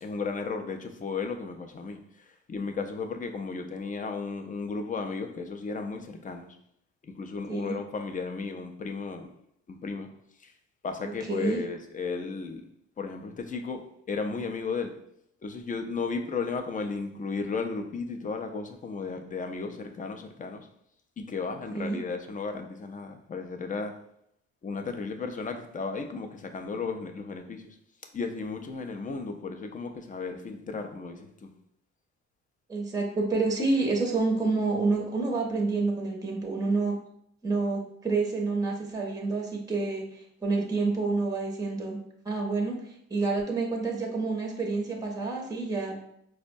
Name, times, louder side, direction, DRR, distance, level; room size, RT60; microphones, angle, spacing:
voice 1, 0.0-6.6 7.0-9.3 9.7-10.1 10.4-10.5 10.8-12.6 13.0-13.8 14.1-14.9 15.4-20.7 21.2-23.9 24.6-27.8 28.1-31.5, left 4 dB, 25° left, 5 dB, 0.4 m, -34 dB
voice 2, 11.0-11.6 21.7-22.0 32.7-37.0 37.4-42.0 42.2-46.0, right 3 dB, 10° right, 1 dB, 0.6 m, -28 dB
4.4 x 2.1 x 2.6 m, 0.74 s
cardioid pair, 90°, 30 cm